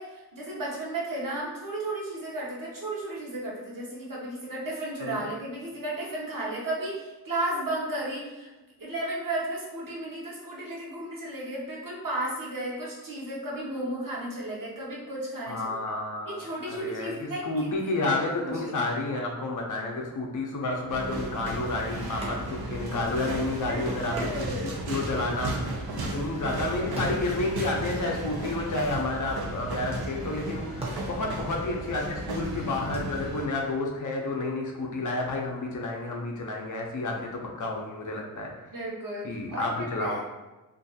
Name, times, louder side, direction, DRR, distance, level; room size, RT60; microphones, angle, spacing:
voice 1, 0.0-8.5 8.8-15.8 16.3-18.1 18.4-18.7 23.7-24.8 37.0-37.2 38.7-40.2, right 1 dB, 60° right, -4 dB, 0.9 m, -34 dB
voice 2, 15.5-24.5 24.9-25.8 26.1-38.5 39.2-40.2, left 2 dB, 55° left, 0 dB, 0.5 m, -30 dB
sound 1, 20.9-33.5, right 2 dB, 80° right, 0.5 m, -34 dB
sound 2, 22.2-22.8 23.1-23.2 24.2-28.1 28.4-29.6 30.3-30.4 30.7-33.0, right 1 dB, 15° right, 0.6 m, -42 dB
2.5 x 2.3 x 2.7 m, 1.1 s
wide cardioid pair, 120°, 38 cm